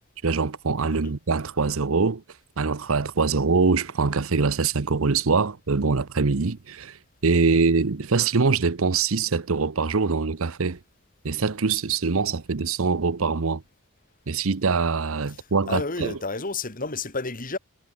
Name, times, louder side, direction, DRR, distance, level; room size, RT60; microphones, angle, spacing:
voice 1, 0.2-2.2 2.6-10.8 11.2-13.6 14.3-16.2, right 4 dB, 70° right, 0.8 m, -23 dB
voice 2, 15.7-17.6, left 3 dB, 40° left, 3.0 m, -31 dB
head